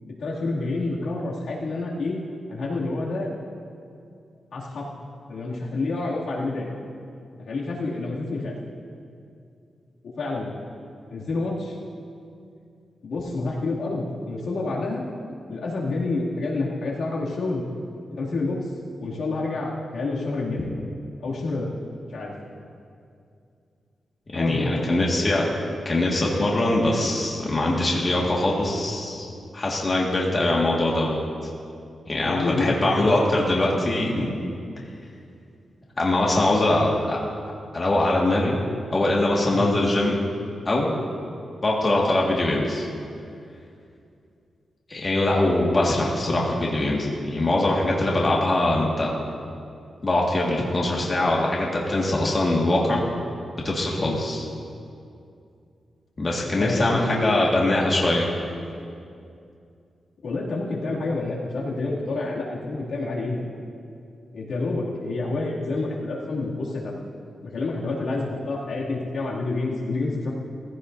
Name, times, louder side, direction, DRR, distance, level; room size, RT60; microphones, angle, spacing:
voice 1, 0.2-2.2 2.5-3.3 4.5-6.7 7.4-8.5 10.2-10.5 11.1-11.8 13.0-15.0 15.5-17.6 18.1-18.7 19.0-20.7 21.2-21.7 22.1-22.3 24.3-25.0 32.2-33.2 39.5-39.8 54.0-54.2 56.4-57.7 60.2-63.4 64.3-67.0 67.4-70.3, left 3 dB, 75° left, -5 dB, 2.6 m, -28 dB
voice 2, 24.3-25.4 25.9-29.3 29.5-31.2 32.1-34.4 36.0-37.2 37.7-38.6 38.9-40.1 40.7-40.9 41.6-42.9 44.9-49.1 50.0-53.0 53.6-54.5 56.2-58.3, left 1 dB, 30° left, -3 dB, 1.9 m, -22 dB
19.0 x 15.5 x 2.7 m, 2.5 s
wide cardioid pair, 115°, 0 cm